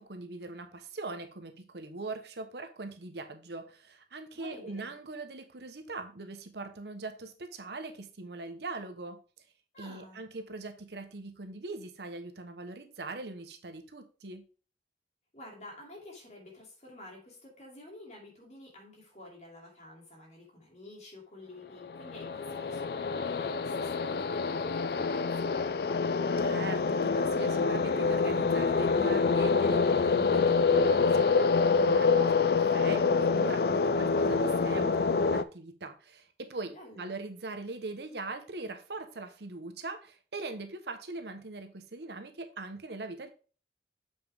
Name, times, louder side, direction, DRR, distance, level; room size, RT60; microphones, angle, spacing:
voice 1, 0.0-9.2 9.8-14.4 26.4-32.4 32.7-43.3, right 3 dB, 70° right, 7 dB, 1.0 m, -41 dB
voice 2, 4.3-4.9 9.7-10.3 15.3-25.8 36.7-37.1, left 1 dB, 40° left, -1 dB, 2.8 m, -50 dB
sound 1, 21.9-35.4, left 4 dB, 60° left, 0.4 m, -26 dB
7.1 x 5.8 x 3.5 m, 0.38 s
head